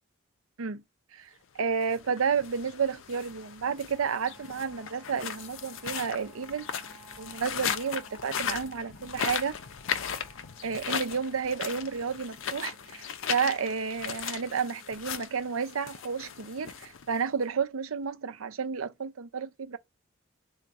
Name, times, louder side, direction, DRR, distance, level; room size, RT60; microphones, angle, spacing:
voice 1, 1.5-6.6 7.2-9.6 10.6-19.8, right 6 dB, 85° right, 0.6 m, -31 dB
sound 1, 1.7-17.4, left 8 dB, 70° left, 0.5 m, -37 dB
sound 2, 3.9-16.7, right 3 dB, ahead, 1.5 m, -58 dB
3.5 x 2.3 x 4.0 m
head